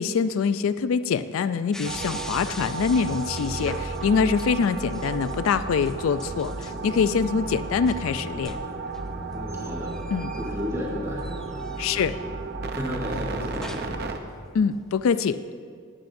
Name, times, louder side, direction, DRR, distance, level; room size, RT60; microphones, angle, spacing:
voice 1, 0.0-8.6 10.1-10.3 11.8-12.2 14.5-15.4, left 6 dB, 75° left, 13 dB, 0.3 m, -24 dB
sound 1, 1.7-10.9 11.2-12.5 13.2-14.1 14.5-15.0, equal, 5° left, 0.5 m, -43 dB
sound 2, 1.8-14.2, right 3 dB, 50° right, 0.7 m, -33 dB
voice 2, 9.3-10.0 10.4-12.3 12.6-14.2, equal, 15° right, -6 dB, 3.3 m, -34 dB
18.0 x 11.5 x 2.6 m, 2.2 s
head